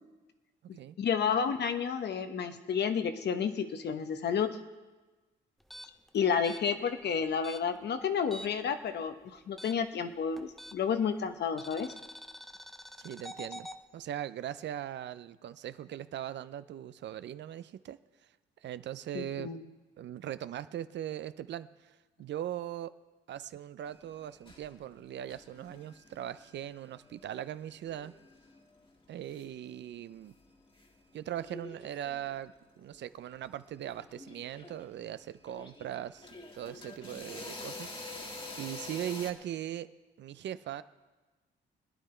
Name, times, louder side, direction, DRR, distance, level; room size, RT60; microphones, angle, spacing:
voice 1, 0.7-4.6 6.1-11.9 19.1-19.6, left 7 dB, 60° left, 8 dB, 1.1 m, -31 dB
sound 1, 5.6-8.7 9.0-11.0 11.6-13.8, equal, ahead, 0.7 m, -47 dB
voice 2, 13.0-13.7 13.9-18.0 18.6-19.5 20.0-23.0 23.3-28.1 29.1-30.3 31.1-36.3 36.5-38.3 38.6-39.9 40.2-40.8, right 11 dB, 65° right, 14 dB, 0.6 m, -40 dB
sound 2, 23.9-30.9 31.2-32.6 33.4-33.5 33.8-39.3, left 2 dB, 25° left, 1.8 m, -47 dB
21.0 x 10.0 x 4.4 m, 1.2 s
cardioid pair, 90°, 20 cm